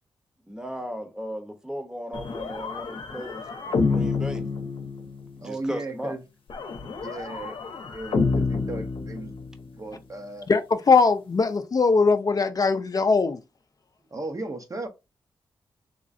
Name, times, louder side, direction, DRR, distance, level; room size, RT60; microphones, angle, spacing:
voice 1, 0.5-4.4 5.4-6.2, equal, 5° right, 0.8 m, -36 dB
sound 1, 2.1-5.4 6.5-9.8, left 4 dB, 70° left, 0.7 m, -28 dB
voice 2, 5.4-6.2 7.0-7.5 7.9-9.3 9.7-10.5 14.1-14.9, right 2 dB, 40° right, 0.7 m, -35 dB
voice 3, 10.5-13.4, left 4 dB, 40° left, 0.4 m, -20 dB
3.5 x 3.0 x 2.6 m
cardioid pair, 80°, 9 cm